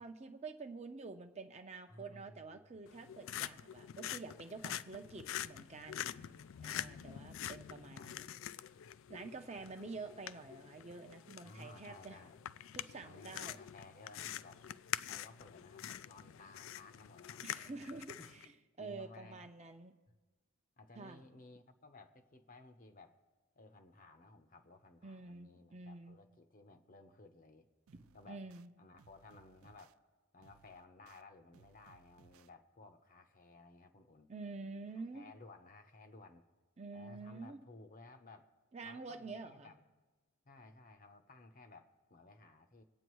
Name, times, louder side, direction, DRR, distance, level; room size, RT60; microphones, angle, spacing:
voice 1, 0.0-6.2 6.6-8.3 9.1-12.2 12.7-13.6 17.4-18.5 18.8-20.0 21.0-21.2 25.0-26.2 28.3-28.7 34.3-35.3 36.8-37.6 38.7-39.7, right 3 dB, 30° right, 5 dB, 0.7 m, -48 dB
voice 2, 1.9-2.8 6.1-6.5 6.8-6.9 8.0-8.1 9.2-9.7 11.4-12.4 13.0-14.7 15.1-17.8 18.2-18.3 18.8-19.5 20.1-20.2 20.8-23.2 23.6-27.7 28.1-28.5 28.8-30.0 30.3-34.3 35.1-36.5 36.9-38.5 38.8-39.8 40.4-42.8, left 3 dB, 40° left, 7 dB, 0.8 m, -57 dB
sound 1, 2.9-18.5, left 11 dB, 60° left, 0.3 m, -46 dB
sound 2, 27.9-28.7 29.0-29.9 30.4-31.2 31.5-32.5, right 6 dB, 70° right, 0.4 m, -66 dB
25.5 x 8.9 x 3.1 m, 1.3 s
head